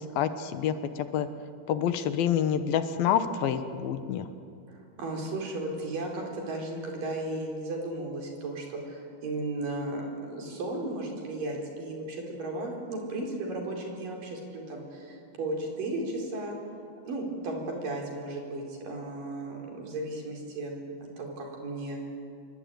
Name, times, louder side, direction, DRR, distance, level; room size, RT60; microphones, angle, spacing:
voice 1, 0.2-1.3 1.7-4.3, left 9 dB, 75° left, 10 dB, 2.8 m, -27 dB
voice 2, 4.7-16.6 17.0-20.9 21.2-22.0, right 2 dB, 60° right, 1 dB, 5.9 m, -35 dB
26.0 x 23.0 x 9.2 m, 2.4 s
omnidirectional pair, 4.4 m